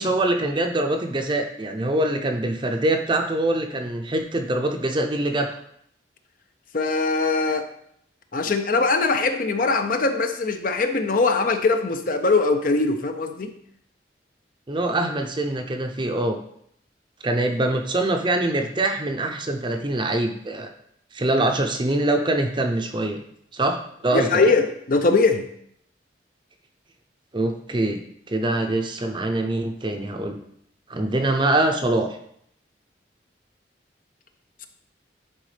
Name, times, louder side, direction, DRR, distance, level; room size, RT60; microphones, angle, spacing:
voice 1, 0.0-5.6 14.7-16.4 17.2-20.7 21.1-23.2 23.5-24.5 27.3-28.0 28.3-30.4 30.9-32.2, right 2 dB, 25° right, 5 dB, 0.6 m, -24 dB
voice 2, 6.7-7.7 8.3-13.5 24.1-25.5, left 3 dB, 50° left, 7 dB, 0.6 m, -21 dB
10.5 x 4.1 x 3.3 m, 0.69 s
head